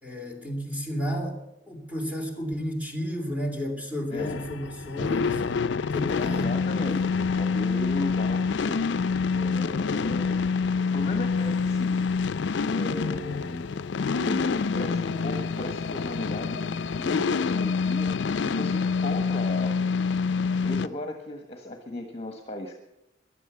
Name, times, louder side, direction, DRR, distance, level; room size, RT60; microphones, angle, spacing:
voice 1, 0.0-1.4 1.7-6.6, equal, 10° right, 2 dB, 3.0 m, -32 dB
voice 2, 4.1-4.4 6.2-12.3 12.6-13.7 14.1-19.8 20.5-22.8, left 1 dB, 35° left, 4 dB, 1.3 m, -36 dB
sound 1, 4.2-20.9, left 5 dB, 85° left, 0.5 m, -27 dB
15.5 x 11.5 x 6.9 m, 0.87 s
head